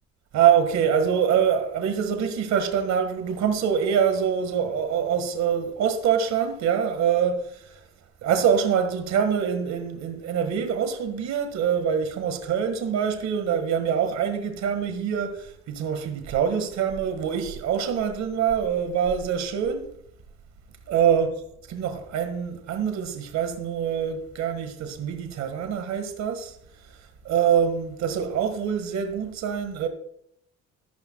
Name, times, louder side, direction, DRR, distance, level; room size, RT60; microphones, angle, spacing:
voice 1, 0.3-7.8 8.2-19.9 20.9-26.6 27.3-29.9, right 8 dB, 70° right, 1.7 m, -25 dB
13.5 x 12.5 x 2.3 m
cardioid pair, 90°, 29 cm